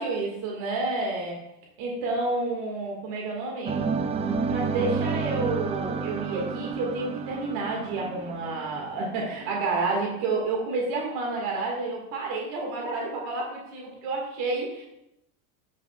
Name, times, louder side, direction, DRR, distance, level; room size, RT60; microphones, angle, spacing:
voice 1, 0.0-1.4 1.8-3.8 4.4-14.8, right 3 dB, 65° right, -1 dB, 1.8 m, -30 dB
sound 1, 3.7-9.6, right 5 dB, 15° right, 0.4 m, -30 dB
7.7 x 7.3 x 2.3 m, 0.83 s
supercardioid pair, 100°, 42 cm